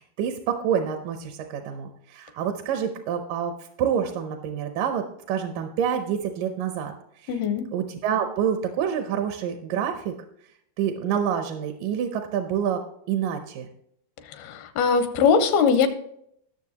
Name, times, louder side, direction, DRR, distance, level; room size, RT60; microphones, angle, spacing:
voice 1, 0.0-6.9 7.7-10.1 10.8-12.8 13.1-13.7, right 8 dB, 75° right, 6 dB, 2.0 m, -27 dB
voice 2, 7.3-7.7 14.3-15.9, left 6 dB, 80° left, 9 dB, 2.7 m, -21 dB
19.0 x 6.8 x 2.9 m, 0.72 s
omnidirectional pair, 4.6 m